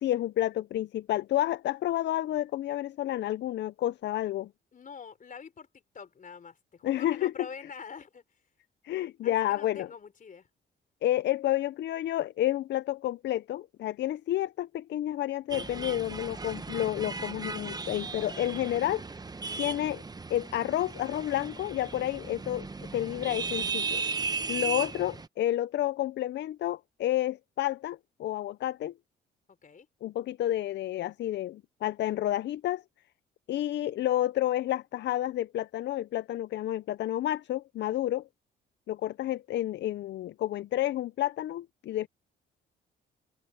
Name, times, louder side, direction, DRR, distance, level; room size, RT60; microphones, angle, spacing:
voice 1, 0.0-4.5 6.8-7.3 8.8-9.9 11.0-19.0 19.6-20.0 20.3-22.7 22.9-24.0 24.5-28.9 30.0-32.8 33.5-38.3 38.9-42.1, left 13 dB, 65° left, 0.5 m, -30 dB
voice 2, 4.7-5.7 5.9-8.2 9.2-10.5 29.6-29.9, left 6 dB, 40° left, 4.0 m, -45 dB
sound 1, 15.5-25.3, right 4 dB, 20° right, 0.9 m, -36 dB
cardioid pair, 90°, 20 cm